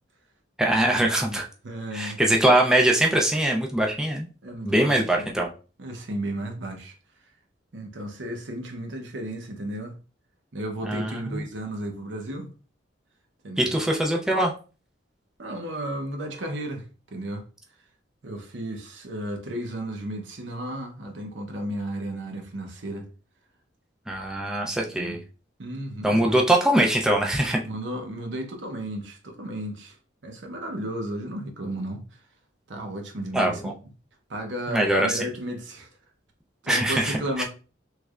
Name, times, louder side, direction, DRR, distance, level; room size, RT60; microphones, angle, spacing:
voice 1, 0.6-1.4 1.9-4.3 4.6-5.5 10.8-11.4 13.6-14.5 24.1-25.2 26.0-27.6 33.3-33.7 34.7-35.2 36.7-37.4, right 1 dB, 5° right, 0.4 m, -22 dB
voice 2, 1.6-2.2 4.4-5.1 5.8-6.9 7.7-9.9 10.5-12.5 13.4-13.7 15.4-17.4 18.2-23.1 24.9-25.2 25.6-26.3 27.6-30.0 30.2-32.1 32.7-33.7 34.3-35.9 36.6-37.4, right 1 dB, 75° right, 0.8 m, -34 dB
3.2 x 3.1 x 2.4 m
head